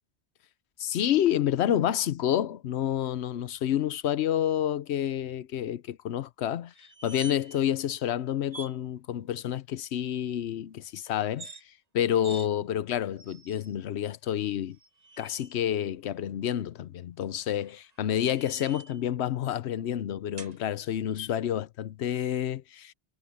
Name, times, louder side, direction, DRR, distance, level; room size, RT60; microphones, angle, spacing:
voice 1, 0.8-6.7 7.0-11.5 11.9-14.8 15.2-22.9, left 10 dB, 85° left, 1.0 m, -29 dB
sound 1, 6.7-7.7 7.9-8.1 8.5-8.8 11.2-11.6 12.2-12.5 13.2-13.8 14.7-15.5 17.4-19.0 20.4-20.6, right 2 dB, 40° right, 1.5 m, -46 dB
omnidirectional pair, 1.1 m